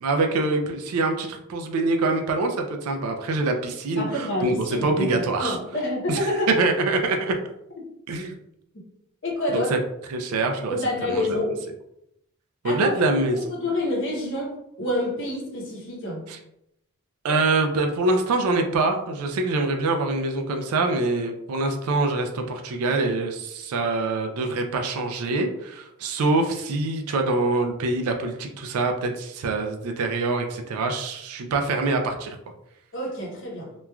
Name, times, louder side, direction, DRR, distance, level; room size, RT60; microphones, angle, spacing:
voice 1, 0.0-5.6 6.1-6.2 6.6-7.3 8.1-8.3 9.7-9.8 10.1-10.8 11.1-11.3 12.6-13.4 16.3-16.4 17.2-32.4, right 3 dB, 75° right, 4 dB, 0.4 m, -25 dB
voice 2, 4.0-6.6 7.8-7.9 9.2-9.7 10.7-11.6 12.6-13.0 13.3-16.3 32.9-33.7, left 1 dB, 55° left, -2 dB, 0.9 m, -28 dB
3.0 x 2.3 x 2.2 m, 0.79 s
head